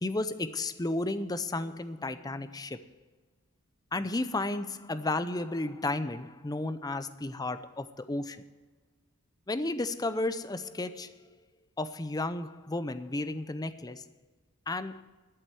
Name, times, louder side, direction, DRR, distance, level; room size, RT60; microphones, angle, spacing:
voice 1, 0.0-2.8 3.9-8.5 9.5-11.1 11.8-14.0 14.7-15.0, left 2 dB, 15° left, 12 dB, 0.6 m, -33 dB
12.5 x 7.9 x 9.1 m, 1.3 s
head